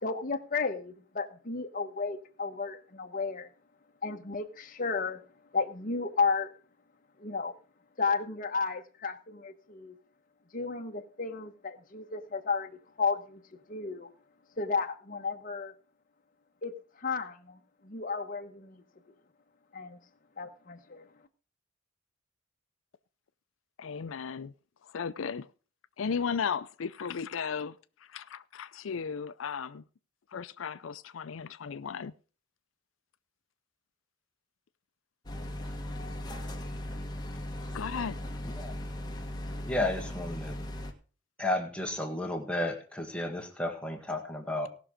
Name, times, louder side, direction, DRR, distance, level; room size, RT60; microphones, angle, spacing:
voice 1, 0.0-3.5 4.0-5.2 5.5-6.5 7.2-7.5 8.0-9.9 10.5-13.4 13.7-14.1 14.6-15.7 16.6-18.8 19.7-20.0 20.4-21.1, left 4 dB, 45° left, 1.0 m, -33 dB
voice 2, 23.8-24.5 24.9-25.5 26.0-27.8 28.1-29.8 30.3-32.1 37.7-38.2, left 6 dB, 90° left, 0.5 m, -35 dB
sound 1, 35.3-40.9, left 1 dB, 20° left, 1.5 m, -38 dB
voice 3, 38.4-38.7 39.6-40.6 41.4-44.7, left 1 dB, 5° left, 1.7 m, -33 dB
18.0 x 6.1 x 5.0 m
head